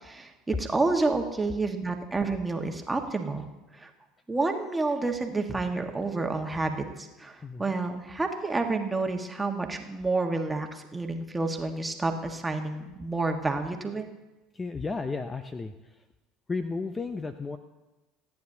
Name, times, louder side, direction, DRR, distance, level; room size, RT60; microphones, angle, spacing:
voice 1, 0.0-3.5 3.8-3.9 4.3-14.1, right 3 dB, 15° right, 4 dB, 1.5 m, -29 dB
voice 2, 7.4-7.7 14.5-15.7 16.5-17.6, left 4 dB, 20° left, 10 dB, 0.6 m, -33 dB
26.5 x 9.5 x 2.8 m, 1.1 s
hypercardioid pair, 70°, 0 cm